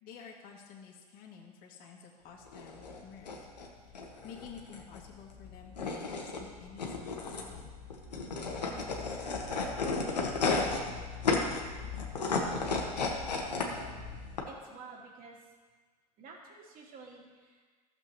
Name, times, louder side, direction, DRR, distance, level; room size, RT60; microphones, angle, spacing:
voice 1, 0.0-3.5 3.9-4.0 4.2-7.7, left 6 dB, 45° left, -2 dB, 2.0 m, -51 dB
sound 1, 2.4-14.4, left 4 dB, 90° left, 1.3 m, -34 dB
voice 2, 13.5-14.0 14.5-15.4 16.2-17.6, right 4 dB, 45° right, -2 dB, 2.6 m, -50 dB
15.0 x 7.0 x 3.0 m, 1.5 s
hypercardioid pair, 85°, 21 cm